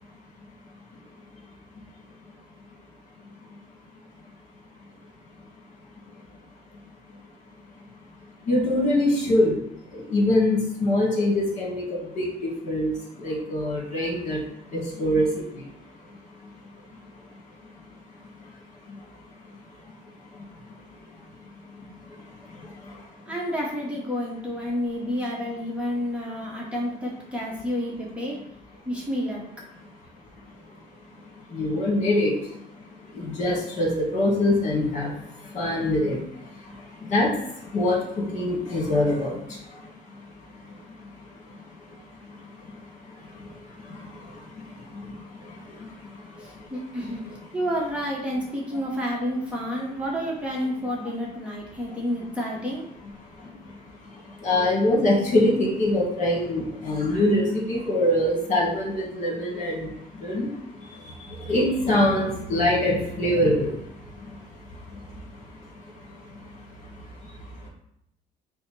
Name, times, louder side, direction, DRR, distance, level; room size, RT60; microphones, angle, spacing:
voice 1, 8.5-9.5 10.1-11.8 12.2-12.9 13.2-14.4 14.7-15.3 31.5-32.3 33.1-35.1 35.5-36.2 37.1-37.3 37.7-39.3 54.4-59.9 60.2-60.5 61.5-63.7, left 1 dB, 45° left, -3 dB, 1.7 m, -23 dB
voice 2, 23.3-28.4 28.8-29.4 46.4-47.2 47.5-52.8, equal, 5° right, -4 dB, 1.0 m, -29 dB
5.4 x 2.1 x 4.6 m, 0.76 s
cardioid pair, 110°, 17 cm